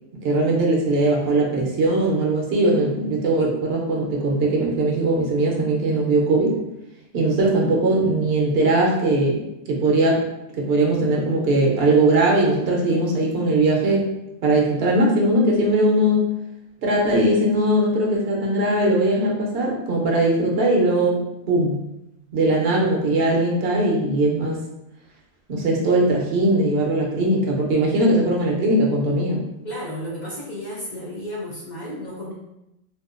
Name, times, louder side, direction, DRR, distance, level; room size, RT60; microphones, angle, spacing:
voice 1, 0.2-6.6 7.1-10.2 10.6-14.0 14.4-16.2 16.8-21.2 21.5-21.9 22.3-24.6 25.5-29.5, right 2 dB, 70° right, -1 dB, 0.8 m, -20 dB
voice 2, 29.6-32.3, equal, 55° left, -4 dB, 0.5 m, -33 dB
2.7 x 2.1 x 2.4 m, 0.87 s
omnidirectional pair, 1.1 m